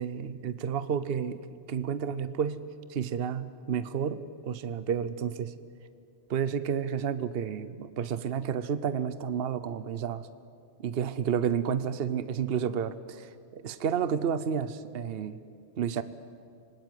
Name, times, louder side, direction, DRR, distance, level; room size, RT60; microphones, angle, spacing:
voice 1, 0.0-1.4 1.7-2.6 2.9-5.5 6.3-10.3 10.8-15.4 15.8-16.0, right 7 dB, 60° right, 14 dB, 1.0 m, -31 dB
26.5 x 19.5 x 9.3 m, 2.4 s
omnidirectional pair, 1.2 m